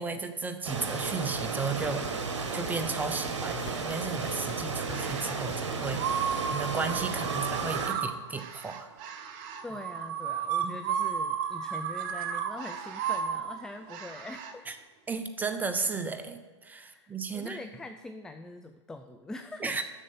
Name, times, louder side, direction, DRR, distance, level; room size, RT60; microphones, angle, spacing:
voice 1, 0.0-2.0 2.5-8.9 10.6-10.7 14.7-14.8 15.1-17.6 19.6-19.8, right 4 dB, 10° right, 8 dB, 0.8 m, -34 dB
sound 1, 0.6-7.9, right 4 dB, 80° right, 1.4 m, -33 dB
sound 2, 1.8-6.8, left 6 dB, 25° left, 0.8 m, -49 dB
sound 3, 4.8-5.4 5.9-14.5, right 8 dB, 45° right, 0.9 m, -33 dB
voice 2, 9.6-14.7 16.9-19.8, left 2 dB, 5° left, 8 dB, 0.3 m, -43 dB
7.3 x 6.6 x 6.6 m, 1.3 s
hypercardioid pair, 115°, 15 cm